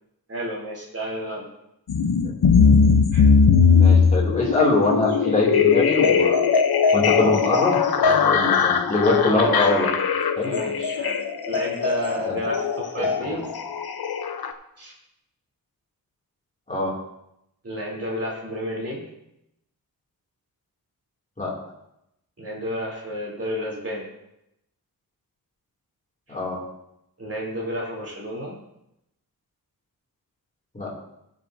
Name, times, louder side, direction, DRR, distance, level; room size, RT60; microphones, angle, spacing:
voice 1, 0.3-1.5 3.1-3.2 9.2-9.6 10.4-11.2 11.5-13.4 14.8-14.9 17.6-19.0 22.4-24.1 27.2-28.6, equal, 40° right, -4 dB, 3.4 m, -31 dB
sound 1, 1.9-14.5, left 6 dB, 75° left, 0.8 m, -19 dB
voice 2, 3.8-6.4 6.9-9.9 10.4-10.5 12.3-12.4 13.0-13.4 16.7-16.9 21.4-21.5 26.3-26.6 30.7-30.9, left 2 dB, 20° left, -4 dB, 2.6 m, -23 dB
15.5 x 7.7 x 2.7 m, 0.82 s
wide cardioid pair, 155°, 37 cm